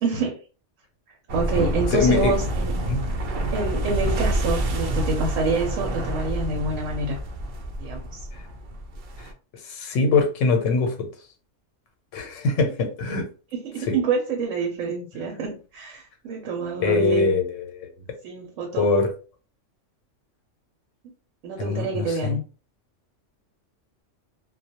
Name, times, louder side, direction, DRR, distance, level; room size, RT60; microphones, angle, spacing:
voice 1, 0.0-0.4 1.3-2.8 3.5-7.2 7.8-8.3 13.5-17.3 18.2-18.9 21.4-22.4, right 3 dB, 85° right, 1 dB, 0.9 m, -27 dB
sound 1, 1.3-9.3, right 1 dB, 65° right, 0.5 m, -27 dB
voice 2, 1.6-2.3 2.8-3.0 9.7-11.1 12.1-13.3 13.9-14.0 16.8-17.9 18.8-19.1 21.6-22.4, left 4 dB, 80° left, 5 dB, 1.0 m, -23 dB
2.2 x 2.1 x 2.7 m, 0.36 s
omnidirectional pair, 1.3 m